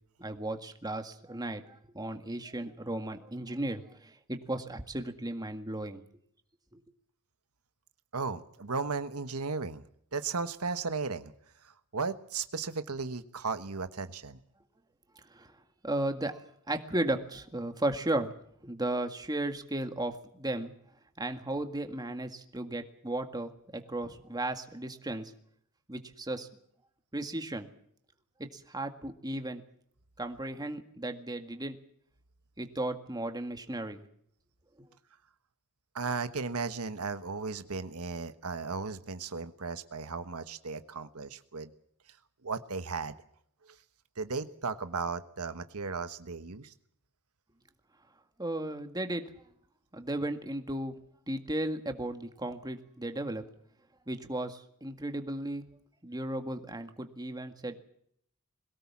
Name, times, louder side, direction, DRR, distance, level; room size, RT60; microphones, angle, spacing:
voice 1, 0.2-6.0 6.7-6.8 15.3-15.5 15.8-18.3 18.6-20.7 21.2-25.3 25.9-26.5 27.1-27.7 28.4-29.6 30.2-31.8 32.6-34.1 34.8-34.9 48.4-49.2 49.9-50.9 51.3-53.4 54.1-55.6 56.0-57.8, right 1 dB, 20° right, 6 dB, 1.9 m, -35 dB
voice 2, 8.1-9.8 10.1-11.3 11.6-14.4 35.9-41.7 42.4-43.1 44.2-46.7, right 4 dB, 80° right, 10 dB, 1.3 m, -35 dB
22.5 x 17.5 x 7.4 m, 0.66 s
head